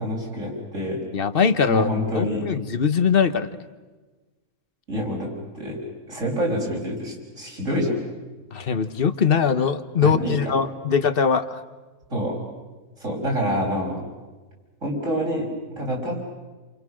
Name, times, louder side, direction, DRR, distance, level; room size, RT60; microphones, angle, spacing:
voice 1, 0.0-1.0 1.7-2.4 4.9-5.8 6.1-7.9 10.0-10.4 12.1-12.4 13.0-14.0 14.8-16.2, equal, 55° right, -2 dB, 6.9 m, -27 dB
voice 2, 1.1-1.9 2.1-3.5 8.5-11.6, left 6 dB, 45° left, 11 dB, 1.1 m, -21 dB
29.5 x 28.0 x 6.4 m, 1.3 s
omnidirectional pair, 1.6 m